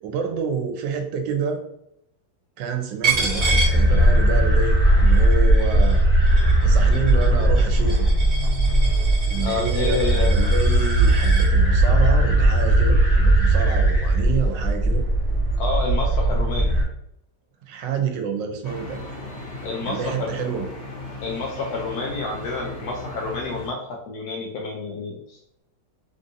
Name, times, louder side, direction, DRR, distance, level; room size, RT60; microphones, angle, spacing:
voice 1, 0.0-1.6 2.6-6.1 6.6-8.1 9.3-15.0 17.7-19.0 19.8-20.7, right 6 dB, 85° right, 5 dB, 1.3 m, -28 dB
Coin (dropping), 3.0-4.5 4.9-11.5, right 4 dB, 45° right, 1.5 m, -30 dB
sound 1, 3.1-16.8, right 1 dB, 15° left, 1.5 m, -18 dB
voice 2, 9.4-10.3 15.6-16.8 19.6-20.3 21.2-23.8 24.1-25.6, left 3 dB, 70° left, -1 dB, 1.0 m, -29 dB
sound 2, 18.6-23.7, left 2 dB, 55° left, 1.4 m, -36 dB
3.5 x 2.6 x 2.6 m, 0.76 s
omnidirectional pair, 1.9 m